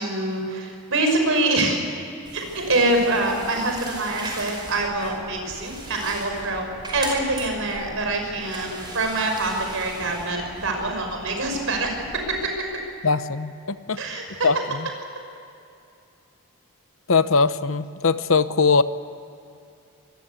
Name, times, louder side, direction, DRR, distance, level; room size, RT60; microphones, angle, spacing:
voice 1, 0.0-1.9 2.3-6.6 6.9-11.9 12.3-12.5 14.0-14.5, right 2 dB, 60° right, 3 dB, 5.9 m, -25 dB
sound 1, 2.3-12.5, right 1 dB, 20° right, 5.3 m, -38 dB
voice 2, 13.0-14.0 14.4-14.5 17.1-18.8, left 4 dB, 60° left, 13 dB, 0.9 m, -20 dB
25.5 x 21.5 x 8.3 m, 2.6 s
head